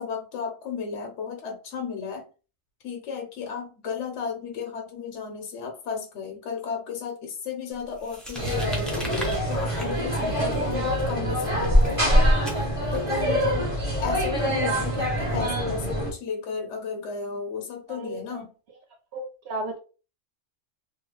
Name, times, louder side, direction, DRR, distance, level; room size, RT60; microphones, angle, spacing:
voice 1, 0.0-2.2 2.8-12.1 12.9-13.7 14.0-18.5, left 6 dB, 70° left, 2 dB, 1.0 m, -34 dB
sound 1, 8.0-13.2, equal, ahead, 0.6 m, -25 dB
sound 2, 8.3-16.1, equal, 30° right, 1.0 m, -26 dB
voice 2, 17.9-18.4 19.1-19.8, right 1 dB, 60° right, 1 dB, 0.9 m, -34 dB
2.9 x 2.3 x 3.0 m, 0.35 s
omnidirectional pair, 1.3 m